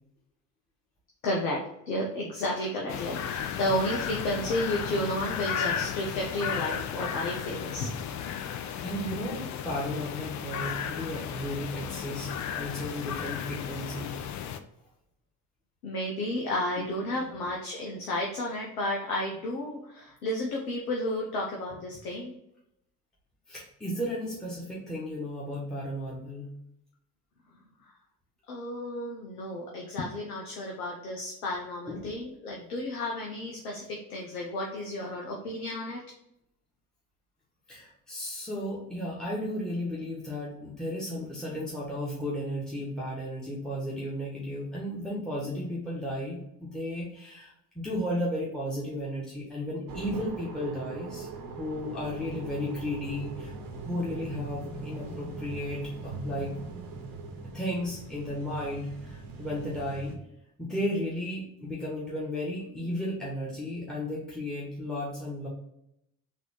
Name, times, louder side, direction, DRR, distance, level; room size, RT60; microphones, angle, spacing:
voice 1, 1.2-7.9 15.8-22.4 28.5-36.0, left 1 dB, 75° left, -1 dB, 0.8 m, -32 dB
sound 1, 2.9-14.6, left 8 dB, 40° left, 0.5 m, -34 dB
voice 2, 8.4-14.1 16.8-17.1 23.5-26.5 31.9-32.1 37.7-51.3 51.6-53.5 53.9-56.5 57.4-60.2 60.6-65.5, left 1 dB, ahead, -5 dB, 1.4 m, -34 dB
sound 2, 49.9-60.2, right 3 dB, 50° right, 1.0 m, -40 dB
4.2 x 2.7 x 4.3 m, 0.80 s
figure-of-eight pair, 50°, 45 cm